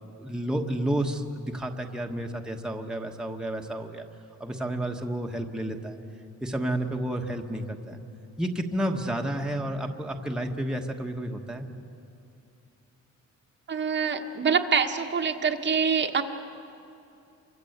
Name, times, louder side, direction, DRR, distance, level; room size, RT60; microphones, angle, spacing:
voice 1, 0.2-4.0 4.4-6.0 6.4-8.0 8.4-11.7, right 1 dB, 5° right, 2 dB, 1.4 m, -31 dB
voice 2, 13.7-16.2, right 6 dB, 40° right, 4 dB, 1.4 m, -25 dB
29.0 x 25.0 x 8.0 m, 2.6 s
cardioid pair, 165°, 30 cm